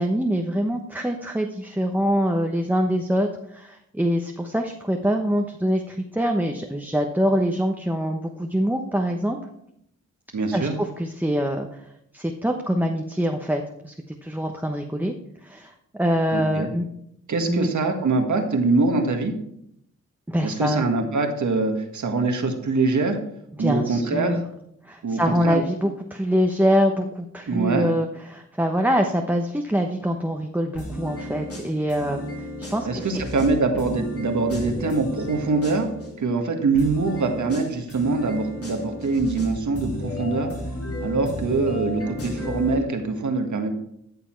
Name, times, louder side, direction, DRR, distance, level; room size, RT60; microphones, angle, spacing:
voice 1, 0.0-9.4 10.5-13.9 14.2-15.1 15.4-15.7 16.0-16.8 17.5-17.7 20.3-20.8 23.6-24.4 24.8-33.2, equal, 5° right, 3 dB, 1.0 m, -24 dB
voice 2, 10.3-10.8 16.3-16.7 17.3-19.3 20.4-23.2 23.6-24.4 25.0-25.6 27.5-27.9 32.8-35.9 36.2-40.5 41.0-43.7, right 3 dB, 70° right, 5 dB, 1.7 m, -23 dB
sound 1, 30.8-36.1 36.8-42.8, left 1 dB, 50° left, 3.1 m, -33 dB
13.5 x 7.0 x 4.6 m, 0.76 s
cardioid pair, 65°, 30 cm